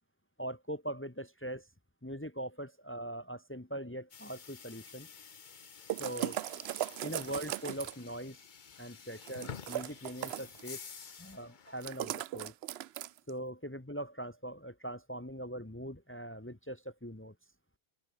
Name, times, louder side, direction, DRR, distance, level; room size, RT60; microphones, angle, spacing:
voice 1, 0.4-1.7 2.0-5.1 6.0-6.4 7.0-8.4 8.8-10.8 11.2-12.5 13.3-17.3, right 1 dB, 10° left, 1.2 m, -41 dB
sound 1, 4.1-11.9, left 6 dB, 50° left, 1.1 m, -50 dB
bottled water, 5.9-8.1 9.3-10.6 11.8-13.3, right 13 dB, 80° right, 0.8 m, -38 dB
open air
omnidirectional pair, 1.1 m